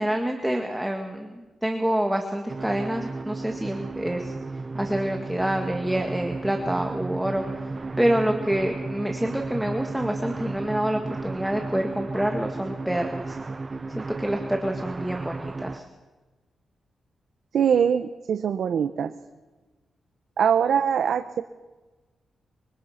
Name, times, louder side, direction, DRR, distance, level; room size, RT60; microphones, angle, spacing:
voice 1, 0.0-7.7 8.0-13.4 14.0-15.9, right 1 dB, 5° right, 3 dB, 1.8 m, -27 dB
sound 1, 2.5-15.8, right 3 dB, 25° right, 0.7 m, -34 dB
voice 2, 17.5-19.1 20.4-21.4, right 7 dB, 70° right, 9 dB, 1.0 m, -22 dB
25.0 x 24.0 x 5.9 m, 1.2 s
wide cardioid pair, 165°, 0 cm